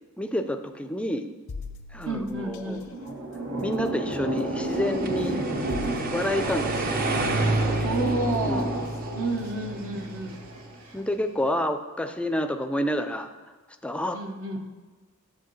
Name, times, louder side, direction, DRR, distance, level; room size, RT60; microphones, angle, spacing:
voice 1, 0.2-1.3 1.9-2.9 3.6-5.4 6.1-7.1 8.5-8.7 10.9-13.3 13.8-14.2, equal, 5° left, 7 dB, 0.4 m, -29 dB
sound 1, 1.5-2.8 4.6-4.8 5.7-7.0 8.8-9.0 9.5-9.6, left 3 dB, 80° left, 0.6 m, -41 dB
voice 2, 2.1-2.8 7.8-8.7 9.1-10.4 14.1-14.7, right 2 dB, 70° right, 4 dB, 0.9 m, -30 dB
sound 2, 2.6-10.9, right 1 dB, 90° right, 1.4 m, -32 dB
sound 3, 4.5-10.6, right 2 dB, 40° right, 0.6 m, -30 dB
9.9 x 7.7 x 3.1 m, 1.4 s
head